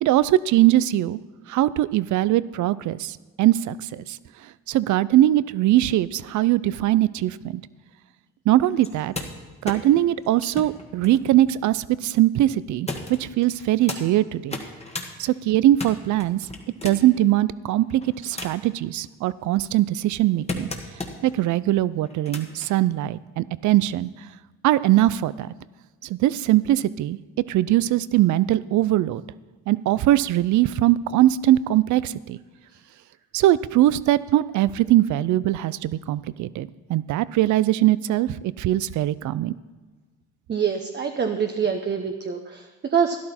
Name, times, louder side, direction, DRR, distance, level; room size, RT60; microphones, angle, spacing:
voice 1, 0.0-1.2 1.5-4.2 4.7-7.6 8.5-9.1 9.6-14.6 15.2-16.4 16.8-20.7 21.2-24.1 24.6-25.5 26.0-27.2 27.5-29.2 29.7-32.4 33.3-39.5, right 14 dB, 75° right, 18 dB, 0.5 m, -21 dB
sound 1, 8.8-12.1 12.9-14.0 14.4-15.1 15.5-17.2 17.8-18.7 19.3-21.3 22.0-22.7 23.8-23.9, left 3 dB, 20° left, 1.5 m, -36 dB
voice 2, 40.5-43.2, right 7 dB, 35° right, 4 dB, 0.8 m, -25 dB
12.5 x 11.5 x 4.3 m, 1.3 s
cardioid pair, 90°, 30 cm